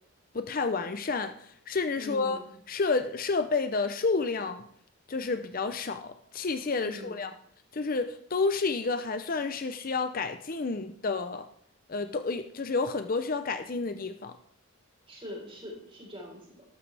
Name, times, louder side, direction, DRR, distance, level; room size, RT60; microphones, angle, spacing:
voice 1, 0.3-2.4 2.7-4.6 5.1-7.3 7.7-11.5 11.9-14.4, left 4 dB, 40° left, 9 dB, 0.6 m, -30 dB
voice 2, 2.0-2.5 6.8-7.2 15.1-16.6, left 1 dB, 25° right, -1 dB, 4.0 m, -42 dB
13.0 x 12.5 x 3.4 m, 0.65 s
head